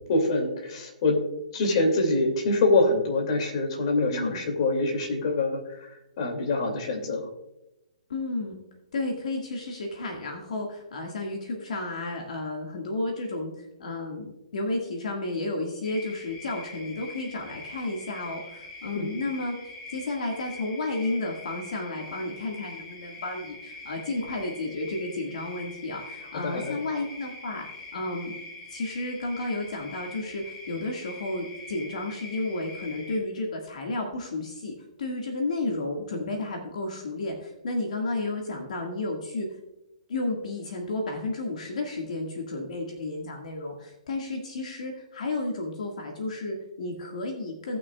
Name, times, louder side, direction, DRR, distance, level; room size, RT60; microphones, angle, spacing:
voice 1, 0.1-1.2 1.5-5.6 6.2-7.2 18.9-19.1 26.3-26.8, left 2 dB, 45° left, 2 dB, 2.4 m, -25 dB
voice 2, 4.1-4.5 8.1-8.6 8.9-19.6 19.9-27.7 27.9-28.3 28.7-34.7 35.0-39.6 40.1-47.8, left 2 dB, 70° left, 1 dB, 1.8 m, -32 dB
sound 1, 15.8-33.2, left 3 dB, 25° left, 2.8 m, -43 dB
18.0 x 6.2 x 2.3 m, 0.91 s
hypercardioid pair, 150°, 4 cm